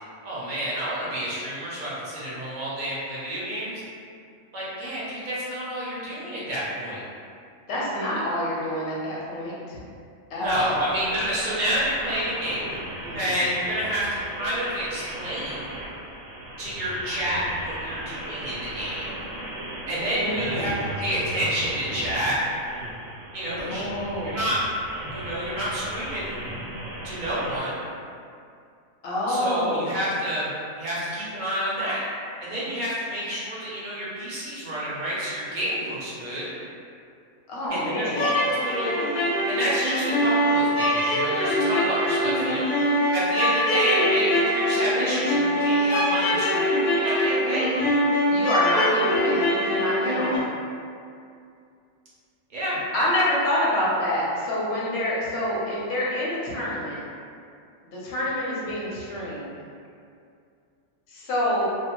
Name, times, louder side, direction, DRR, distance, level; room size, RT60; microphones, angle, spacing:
voice 1, 0.2-3.8 4.5-7.0 10.3-12.7 13.1-15.7 16.6-19.2 19.9-22.4 23.3-23.9 24.2-24.6 25.1-26.4 27.0-27.8 29.3-30.5 30.8-32.0 32.4-36.5 37.7-39.1 39.5-42.7 43.1-47.8 52.5-52.8, equal, 50° right, -8 dB, 0.6 m, -29 dB
voice 2, 7.7-9.8 10.3-10.8 13.0-13.3 20.1-20.8 23.4-24.4 29.0-29.9 37.5-38.3 48.3-50.5 52.9-57.0 57.8-59.5 61.1-61.7, left 1 dB, 55° left, -6 dB, 0.8 m, -27 dB
sound 1, 10.4-27.6, right 1 dB, 70° right, 0.9 m, -37 dB
sound 2, 38.1-50.4, equal, 75° left, 0.4 m, -23 dB
2.5 x 2.1 x 2.9 m, 2.4 s
omnidirectional pair, 1.5 m